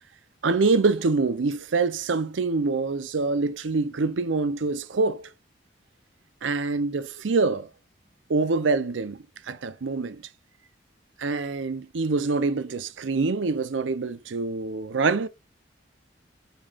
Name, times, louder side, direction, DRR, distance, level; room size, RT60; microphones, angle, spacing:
voice 1, 0.4-5.3 6.4-7.7 8.3-10.3 11.2-15.3, right 3 dB, 85° right, 0.6 m, -25 dB
5.3 x 3.6 x 2.4 m
head